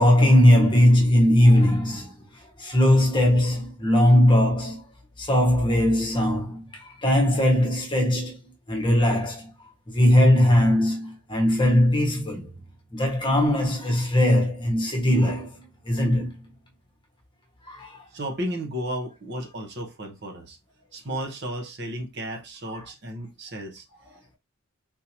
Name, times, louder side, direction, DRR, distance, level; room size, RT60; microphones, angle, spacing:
voice 1, 0.0-4.8 5.2-8.4 8.7-9.5 9.9-12.5 12.9-16.3 17.7-18.0, left 1 dB, 20° left, 1.0 m, -20 dB
voice 2, 18.1-20.6 20.9-23.9, equal, 50° right, 0.9 m, -33 dB
3.6 x 2.7 x 2.8 m
head